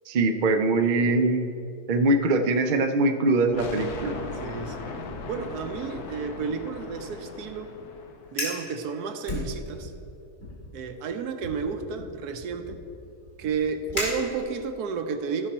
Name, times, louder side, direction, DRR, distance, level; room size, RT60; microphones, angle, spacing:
voice 1, 0.1-1.5 1.9-4.2, right 2 dB, 55° right, 6 dB, 0.5 m, -22 dB
sound 1, 3.5-8.4, left 3 dB, 80° left, 1.3 m, -38 dB
voice 2, 4.4-4.9 5.2-7.7 8.3-9.9 10.7-12.8 13.4-15.5, right 5 dB, 85° right, 7 dB, 1.2 m, -31 dB
Fire, 8.2-8.7 9.2-10.0 10.4-10.7 11.4-14.8, left 1 dB, 55° left, 2.8 m, -35 dB
14.5 x 5.7 x 4.3 m, 2.6 s
omnidirectional pair, 1.6 m